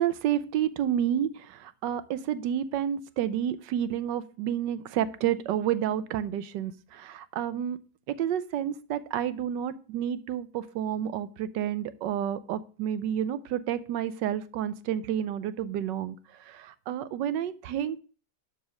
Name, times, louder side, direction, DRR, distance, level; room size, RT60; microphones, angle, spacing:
voice 1, 0.0-7.8 8.1-18.0, right 10 dB, 85° right, 15 dB, 1.3 m, -30 dB
12.0 x 4.3 x 6.2 m, 0.39 s
omnidirectional pair, 1.9 m